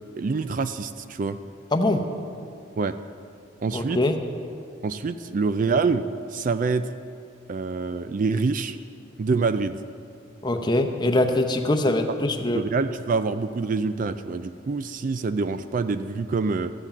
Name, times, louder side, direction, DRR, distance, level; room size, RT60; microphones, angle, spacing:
voice 1, 0.2-1.4 2.8-3.0 3.6-4.0 4.8-6.0 6.3-6.9 7.5-8.8 9.2-9.8 12.1-12.2 12.5-16.7, right 4 dB, 40° right, 11 dB, 0.4 m, -26 dB
voice 2, 1.7-2.0 3.7-4.2 10.4-12.6, left 1 dB, 20° left, 5 dB, 0.7 m, -23 dB
14.0 x 7.8 x 7.2 m, 2.4 s
head